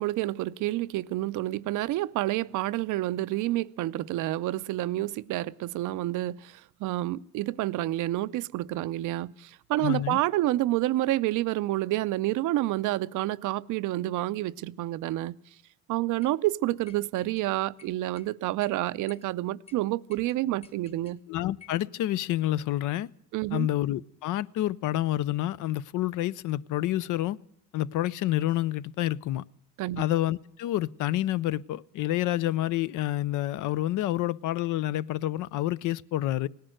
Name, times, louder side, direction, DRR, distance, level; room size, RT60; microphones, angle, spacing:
voice 1, 0.0-15.4 15.9-21.2 23.3-23.7 29.8-30.0, right 16 dB, 85° right, 0.5 m, -29 dB
voice 2, 9.8-10.2 21.3-23.1 23.5-27.4 27.7-29.4 30.0-36.5, left 14 dB, 80° left, 0.5 m, -28 dB
sound 1, 16.2-16.4 16.9-17.5 17.8-18.3 18.6-18.7 19.1-19.3 19.7-19.8 20.1-21.2 21.6-21.8, left 5 dB, 20° left, 1.1 m, -53 dB
18.0 x 10.5 x 7.7 m
cardioid pair, 90°, 30 cm